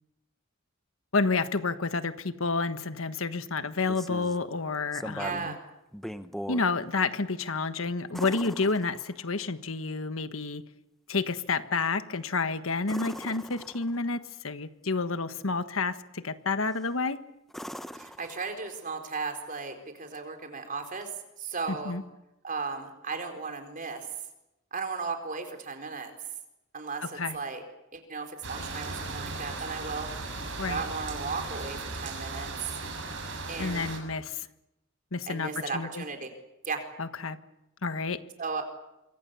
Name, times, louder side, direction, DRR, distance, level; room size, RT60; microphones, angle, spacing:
voice 1, 1.1-5.6 6.5-10.6 11.1-17.2 21.7-22.0 27.2-27.4 30.6-30.8 33.6-34.5 35.1-36.0 37.0-37.4 37.8-38.2, left 4 dB, 75° left, 10 dB, 1.4 m, -30 dB
sound 1, 3.8-4.4 4.9-5.6 5.9-6.7 8.1-9.4 12.8-14.1 16.6-17.0 17.5-18.9 21.0-21.1, equal, ahead, 0.9 m, -40 dB
voice 2, 5.2-5.6 18.0-21.1 21.4-22.0 22.4-24.1 24.7-26.1 26.7-27.6 27.9-30.1 30.7-32.5 33.5-34.0 35.3-36.3 36.6-36.8 38.4-38.6, right 4 dB, 40° right, 5 dB, 4.4 m, -35 dB
sound 2, 28.4-34.0, right 3 dB, 65° right, 6.8 m, -37 dB
27.0 x 25.0 x 7.0 m, 0.90 s
head